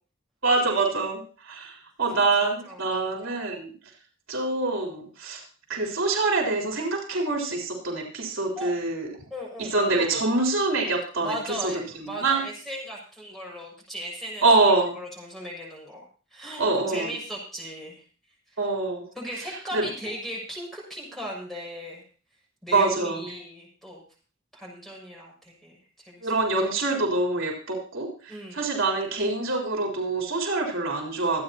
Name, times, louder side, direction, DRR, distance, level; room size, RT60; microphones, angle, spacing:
voice 1, 0.4-3.7 4.3-5.4 5.7-9.1 9.7-11.4 11.6-11.7 12.0-12.4 14.4-14.9 16.6-17.1 18.6-19.0 19.7-19.9 22.7-23.2 26.2-31.4, right 3 dB, 70° right, 0 dB, 3.8 m, -25 dB
voice 2, 2.6-3.2 8.5-8.7 9.3-9.9 11.2-14.4 15.0-16.0 16.3-18.0 18.5-18.6 19.1-22.0 22.6-24.0 24.5-26.3 28.3-28.6, equal, ahead, -3 dB, 6.2 m, -37 dB
25.0 x 9.6 x 2.9 m, 0.38 s
head